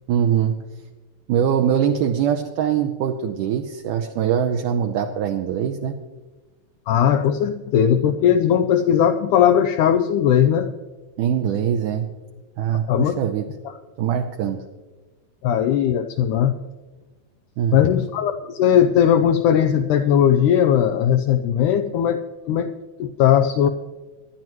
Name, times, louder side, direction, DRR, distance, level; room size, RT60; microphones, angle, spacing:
voice 1, 0.1-0.6 1.3-6.0 11.2-12.1 12.6-13.5 14.0-14.6 17.6-17.8, right 9 dB, 80° right, 4 dB, 2.0 m, -22 dB
voice 2, 6.9-10.7 12.9-13.2 13.6-13.8 15.4-16.5 17.7-22.2 22.5-22.7 23.0-23.7, left 9 dB, 90° left, 9 dB, 1.7 m, -18 dB
24.5 x 10.5 x 3.0 m, 1.3 s
omnidirectional pair, 4.2 m